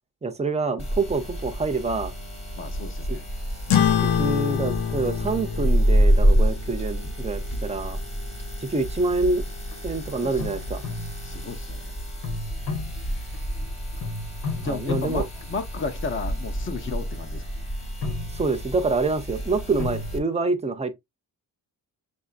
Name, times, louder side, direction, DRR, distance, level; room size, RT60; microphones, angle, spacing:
voice 1, 0.2-2.1 3.1-3.2 4.0-8.0 8.6-9.4 9.8-10.8 14.6-15.2 18.3-20.9, right 3 dB, 15° right, 0.6 m, -26 dB
sound 1, 0.8-20.2, equal, 15° left, 1.2 m, -28 dB
voice 2, 2.6-3.2 10.2-10.5 11.2-11.9 14.6-17.4, left 4 dB, 35° left, 0.7 m, -33 dB
sound 2, 3.7-8.5, left 8 dB, 65° left, 0.7 m, -27 dB
sound 3, 9.3-9.8 10.4-11.6 12.2-13.6 14.0-16.3 16.9-17.2 17.8-18.9 19.8-20.1, left 3 dB, 85° left, 1.5 m, -34 dB
6.7 x 2.6 x 2.4 m
wide cardioid pair, 140°, 37 cm